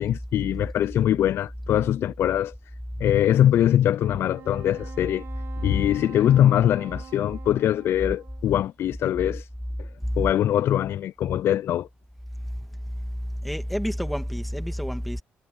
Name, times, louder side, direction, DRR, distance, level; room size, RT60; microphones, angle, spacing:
voice 1, 0.0-2.5 3.0-5.2 5.6-9.5 10.2-11.9, left 11 dB, 65° left, 0.3 m, -22 dB
Wind instrument woodwind instrument, 4.0-8.5, right 8 dB, 60° right, 3.4 m, -45 dB
voice 2, 13.4-15.2, equal, ahead, 1.9 m, -29 dB
supercardioid pair, 70°, 4 cm